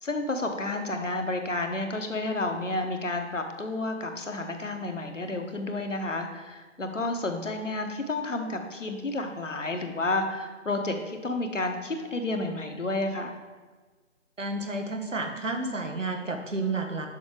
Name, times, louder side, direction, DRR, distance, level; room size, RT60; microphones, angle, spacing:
voice 1, 0.0-13.3, left 2 dB, 70° left, 4 dB, 1.2 m, -31 dB
voice 2, 14.4-17.1, right 2 dB, 70° right, 4 dB, 1.3 m, -31 dB
7.2 x 6.2 x 4.8 m, 1.3 s
figure-of-eight pair, 150°, 39 cm